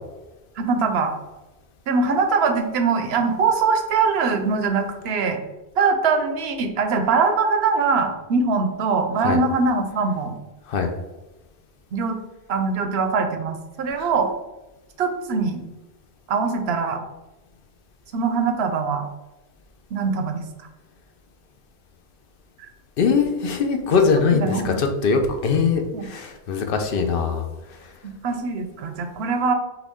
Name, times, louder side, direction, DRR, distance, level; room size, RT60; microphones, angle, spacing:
voice 1, 0.6-1.2 1.9-5.4 5.8-10.4 11.9-12.2 12.5-14.3 15.0-15.6 16.3-17.0 18.1-19.1 19.9-20.4 22.6-22.7 23.9-24.7 25.9-26.0 28.0-29.5, right 4 dB, 75° right, 6 dB, 0.8 m, -22 dB
voice 2, 23.0-27.4, left 5 dB, 60° left, 4 dB, 0.7 m, -21 dB
5.8 x 2.3 x 3.5 m, 1.1 s
omnidirectional pair, 1.1 m